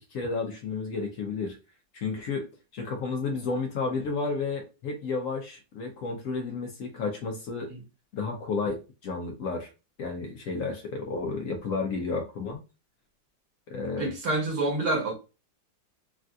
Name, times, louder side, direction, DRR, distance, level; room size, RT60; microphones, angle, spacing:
voice 1, 0.1-1.6 1.9-2.5 2.7-7.7 8.2-9.7 10.0-12.6 13.7-14.1, left 4 dB, 80° left, 0.7 m, -32 dB
voice 2, 14.0-15.1, right 2 dB, 55° right, 1.5 m, -27 dB
3.3 x 2.6 x 2.3 m
omnidirectional pair, 2.0 m